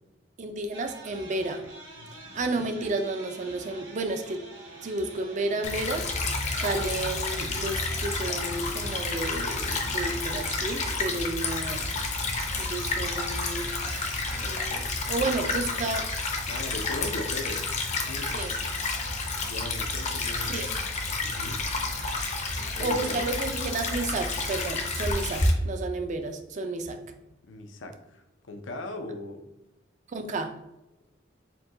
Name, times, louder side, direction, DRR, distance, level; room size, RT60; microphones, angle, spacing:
voice 1, 0.4-1.7 2.3-4.4 4.8-6.1 6.5-11.8 12.6-16.1 18.2-18.5 20.4-20.7 22.8-27.0 30.1-30.5, right 2 dB, 40° right, 6 dB, 0.4 m, -32 dB
sound 1, 0.7-14.7, right 2 dB, 80° right, 1.1 m, -47 dB
voice 2, 2.0-2.4 16.5-17.7 18.0-18.4 19.4-20.5 21.2-21.6 22.7-23.2 27.5-29.4, left 2 dB, 80° left, 5 dB, 0.6 m, -38 dB
Stream / Trickle dribble, 5.6-25.5, left 3 dB, 40° left, 0.6 m, -30 dB
4.5 x 2.2 x 3.8 m, 0.96 s
head